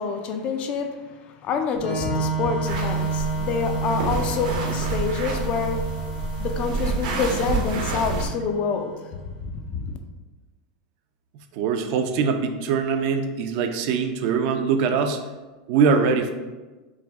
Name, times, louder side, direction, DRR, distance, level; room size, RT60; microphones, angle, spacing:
voice 1, 0.0-5.9 6.4-10.0, left 5 dB, 30° left, 6 dB, 0.3 m, -27 dB
Organ, 1.7-9.3, right 4 dB, 65° left, 1.0 m, -30 dB
sound 1, 2.6-8.3, right 3 dB, 75° right, 0.8 m, -29 dB
voice 2, 11.5-15.2 15.7-16.3, right 5 dB, 50° right, 7 dB, 0.3 m, -22 dB
4.7 x 2.1 x 3.4 m, 1.2 s
supercardioid pair, 160°, 4 cm